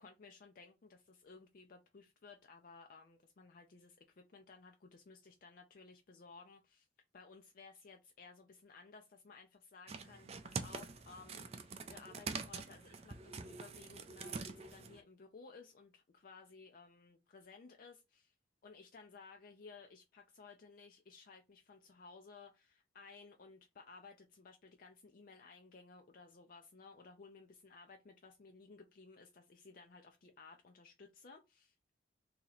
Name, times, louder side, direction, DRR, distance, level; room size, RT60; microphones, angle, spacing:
voice 1, 0.0-6.9 7.1-18.3 18.6-31.7, left 4 dB, 50° left, 0.4 m, -57 dB
sound 1, 9.9-15.0, right 4 dB, 35° right, 0.4 m, -45 dB
2.9 x 2.8 x 4.0 m
head